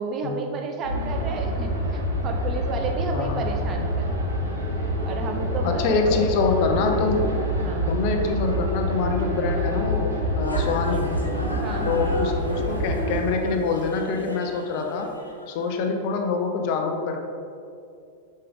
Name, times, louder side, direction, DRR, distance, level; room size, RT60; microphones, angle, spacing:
voice 1, 0.0-4.1 4.5-4.6 5.0-6.2 7.6-7.9 11.6-12.2, right 4 dB, 30° right, 4 dB, 0.7 m, -32 dB
sound 1, 0.8-13.2, equal, 70° right, 1.5 m, -26 dB
voice 2, 5.6-7.3 7.9-11.1 11.8-15.1 15.5-17.2, left 4 dB, 45° left, 4 dB, 0.7 m, -25 dB
sound 2, 10.4-16.0, left 1 dB, 85° left, 0.8 m, -37 dB
6.6 x 5.4 x 3.7 m, 2.5 s
figure-of-eight pair, 90°, 0 cm